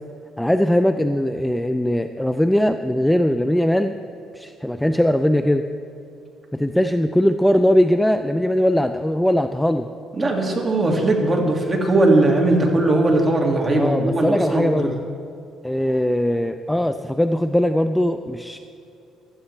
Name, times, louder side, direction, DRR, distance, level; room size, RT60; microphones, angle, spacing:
voice 1, 0.4-3.9 4.3-5.6 6.5-9.9 13.8-14.9 15.6-18.6, equal, 5° left, 8 dB, 0.4 m, -20 dB
voice 2, 10.1-15.0, right 2 dB, 25° right, 0 dB, 2.0 m, -19 dB
15.5 x 12.5 x 3.2 m, 2.6 s
cardioid pair, 115°, 0 cm